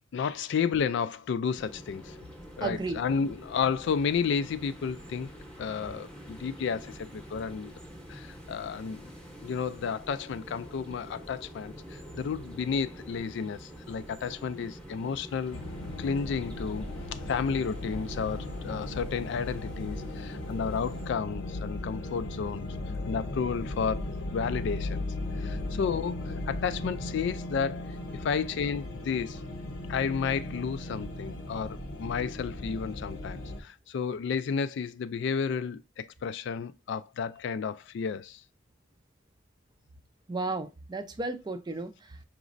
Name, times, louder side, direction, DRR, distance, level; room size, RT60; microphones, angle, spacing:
voice 1, 0.1-2.2 2.6-5.3 5.6-7.7 8.1-9.1 9.4-15.6 16.0-22.7 23.1-24.1 24.3-25.1 25.4-29.4 29.9-38.4, left 6 dB, 65° left, 0.3 m, -32 dB
sound 1, 1.5-21.1, equal, 5° left, 0.8 m, -46 dB
voice 2, 2.6-3.0 40.3-42.2, right 3 dB, 20° right, 0.4 m, -34 dB
sound 2, 15.5-33.6, left 1 dB, 85° left, 0.8 m, -37 dB
4.9 x 3.0 x 2.5 m
head